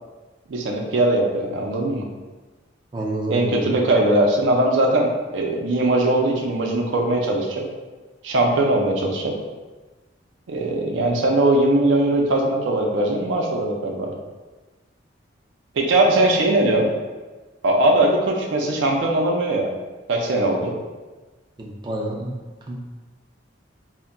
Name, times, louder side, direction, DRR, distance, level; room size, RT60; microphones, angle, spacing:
voice 1, 0.5-2.0 3.3-7.7 8.2-9.4 10.5-14.1 15.8-16.9 17.6-19.7 20.1-20.7, right 1 dB, 85° right, 1 dB, 0.4 m, -20 dB
voice 2, 2.9-3.7 21.6-22.4 22.7-22.8, right 1 dB, 25° right, -1 dB, 0.3 m, -28 dB
2.2 x 2.1 x 3.7 m, 1.2 s
head